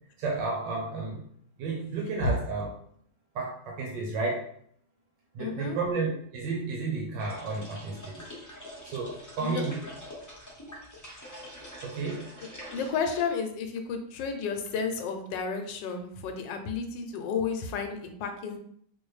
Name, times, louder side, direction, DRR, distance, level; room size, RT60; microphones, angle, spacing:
voice 1, 0.2-1.2 1.6-2.7 3.3-4.5 5.4-8.2 8.8-9.9 11.8-12.3, right 3 dB, 85° right, -1 dB, 1.4 m, -32 dB
voice 2, 5.4-5.8 9.4-9.6 12.7-18.6, left 5 dB, 85° left, 5 dB, 1.3 m, -32 dB
sound 1, 7.2-13.2, left 1 dB, 20° left, 0.5 m, -45 dB
3.9 x 2.5 x 3.1 m, 0.65 s
omnidirectional pair, 1.9 m